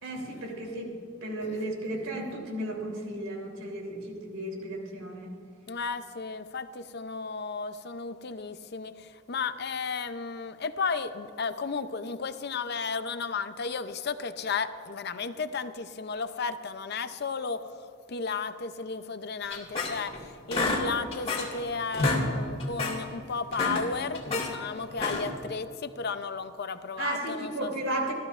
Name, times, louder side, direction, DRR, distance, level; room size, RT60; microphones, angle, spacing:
voice 1, 0.0-0.9 1.2-5.3 27.0-28.1, right 1 dB, 85° right, 0 dB, 3.3 m, -34 dB
voice 2, 5.7-17.7 18.1-27.7, left 5 dB, 55° left, 10 dB, 0.6 m, -34 dB
sound 1, 19.5-20.2 20.5-21.6 21.9-22.3 22.6-23.0 23.4-24.5 24.9-25.4, left 2 dB, 30° left, 1.9 m, -29 dB
26.5 x 13.5 x 2.5 m, 2.5 s
head